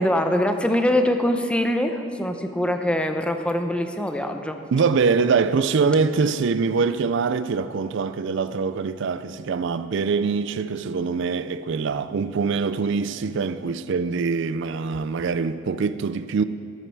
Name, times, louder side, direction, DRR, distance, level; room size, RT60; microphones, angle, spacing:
voice 1, 0.0-4.6, left 1 dB, 5° left, 0.6 m, -23 dB
voice 2, 4.7-16.4, right 5 dB, 60° right, 0.4 m, -23 dB
14.5 x 12.5 x 4.7 m
head